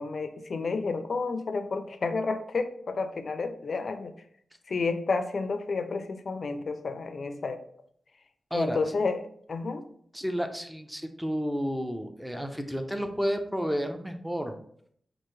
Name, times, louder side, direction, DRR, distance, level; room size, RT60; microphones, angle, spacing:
voice 1, 0.0-4.1 4.7-7.6 8.5-9.2 9.5-9.8, left 4 dB, 60° left, 9 dB, 0.4 m, -30 dB
voice 2, 10.1-14.5, equal, 5° right, 6 dB, 0.5 m, -31 dB
4.6 x 2.5 x 3.0 m, 0.65 s
wide cardioid pair, 110°, 0 cm